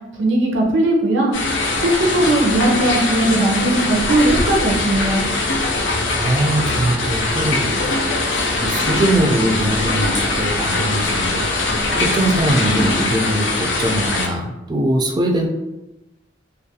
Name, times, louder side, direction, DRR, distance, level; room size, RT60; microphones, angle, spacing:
voice 1, 0.2-1.3 1.8-5.2, right 1 dB, 80° right, 0 dB, 0.6 m, -18 dB
sound 1, 1.3-14.3, left 2 dB, 90° left, 0.5 m, -21 dB
voice 2, 6.1-8.0 8.3-11.4 12.0-15.5, right 1 dB, 25° right, 2 dB, 0.3 m, -21 dB
2.4 x 2.2 x 2.7 m, 0.94 s
head